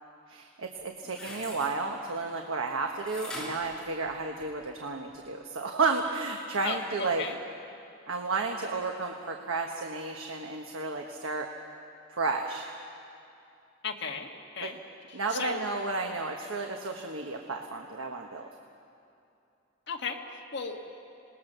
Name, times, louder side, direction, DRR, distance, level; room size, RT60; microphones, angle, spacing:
voice 1, 0.3-7.2 8.1-11.5 12.1-12.7 14.6-14.7 15.1-18.5, right 3 dB, 80° right, 3 dB, 1.2 m, -32 dB
sound 1, 0.8-1.7 3.1-4.6 5.1-5.2, left 1 dB, 5° left, 5.4 m, -42 dB
voice 2, 6.6-7.4 13.8-14.8 15.1-15.7 19.9-20.8, left 5 dB, 55° left, 2 dB, 1.8 m, -36 dB
26.5 x 19.0 x 6.7 m, 2.7 s
head